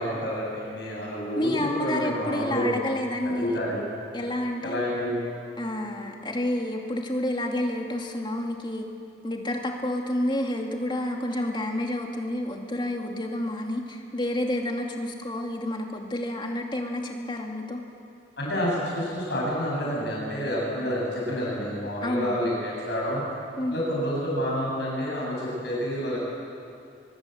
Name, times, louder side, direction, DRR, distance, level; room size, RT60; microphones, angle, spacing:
voice 1, 0.0-2.7 3.4-3.8 4.6-5.2 18.4-23.2 23.7-26.2, equal, 65° left, -4 dB, 7.1 m, -28 dB
voice 2, 1.3-3.6 4.1-4.9 5.6-8.9 9.2-17.8 22.0-22.4 23.6-23.8, left 1 dB, 25° left, 2 dB, 2.5 m, -29 dB
23.0 x 23.0 x 7.9 m, 2.6 s
head